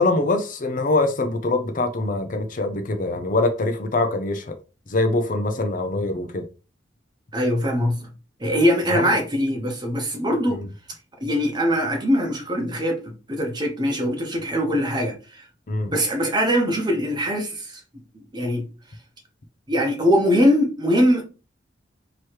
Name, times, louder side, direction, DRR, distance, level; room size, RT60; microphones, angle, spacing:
voice 1, 0.0-4.5 4.9-6.5 8.9-9.2 10.5-10.7 15.7-15.9, left 2 dB, 40° left, 0.5 m, -23 dB
voice 2, 7.3-8.1 8.4-10.6 11.2-15.5 15.9-17.8 18.1-18.7 19.7-21.2, equal, 20° right, 0.9 m, -22 dB
3.1 x 3.0 x 4.6 m
head